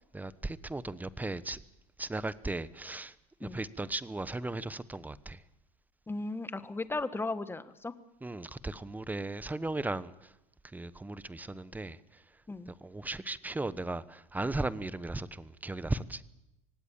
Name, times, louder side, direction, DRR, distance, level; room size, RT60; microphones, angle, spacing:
voice 1, 0.1-1.6 2.0-3.1 3.4-5.4 8.2-10.3 10.7-12.0 12.7-16.2, right 2 dB, 10° right, 1.0 m, -36 dB
voice 2, 6.1-7.9 12.5-12.7, left 3 dB, 10° left, 1.5 m, -36 dB
25.0 x 18.0 x 7.3 m
hypercardioid pair, 95°, 20 cm